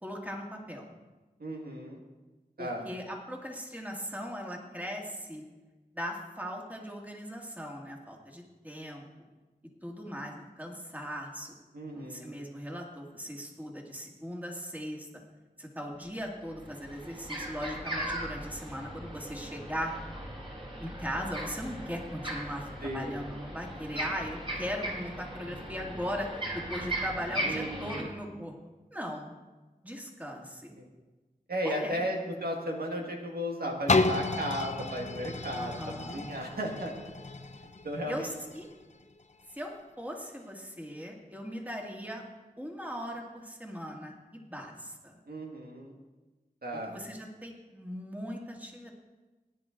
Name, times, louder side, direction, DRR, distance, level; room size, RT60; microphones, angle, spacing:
voice 1, 0.0-0.9 2.6-5.4 5.9-9.0 9.8-11.6 11.9-15.1 15.6-19.9 20.8-28.5 28.9-29.3 29.8-30.7 31.6-32.0 35.5-36.2 38.1-38.3 38.5-38.7 39.5-39.7 40.0-42.2 42.6-45.2 46.7-48.9, equal, 10° right, 0 dB, 2.1 m, -39 dB
voice 2, 1.4-2.0 2.6-2.9 11.7-12.4 22.8-23.2 27.4-28.1 30.8-30.9 31.5-36.9 37.6-38.3 45.3-45.9 46.6-47.0, equal, 85° right, 0 dB, 1.8 m, -35 dB
sound 1, 15.9-16.0 16.4-28.0, right 1 dB, 35° right, 4.1 m, -38 dB
sound 2, 33.9-39.6 40.2-40.3, left 3 dB, 50° left, 0.7 m, -32 dB
17.5 x 10.0 x 3.8 m, 1.2 s
wide cardioid pair, 60°, 15 cm